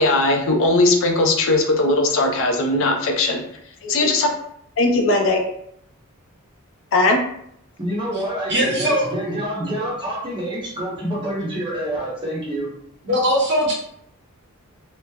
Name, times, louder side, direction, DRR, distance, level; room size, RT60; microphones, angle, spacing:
voice 1, 0.0-3.4 3.8-4.3 4.8-5.4 6.9-7.2, left 2 dB, 60° left, 3 dB, 0.4 m, -18 dB
voice 2, 7.8-12.7, right 1 dB, 20° right, -5 dB, 0.8 m, -27 dB
voice 3, 8.5-9.0 13.0-13.7, equal, 50° right, -3 dB, 0.8 m, -19 dB
3.1 x 2.0 x 2.2 m, 0.71 s
head